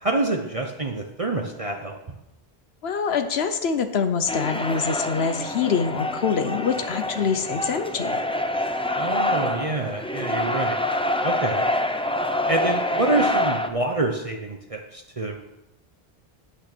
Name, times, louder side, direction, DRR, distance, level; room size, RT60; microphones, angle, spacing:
voice 1, 0.0-2.0 9.0-10.8 11.2-11.6 12.5-15.4, right 2 dB, 35° right, 2 dB, 1.0 m, -27 dB
voice 2, 2.8-8.2, left 6 dB, 85° left, 8 dB, 1.1 m, -25 dB
sound 1, 4.3-13.7, left 1 dB, 5° left, 0.5 m, -26 dB
9.5 x 8.2 x 6.1 m, 0.92 s
omnidirectional pair, 1.0 m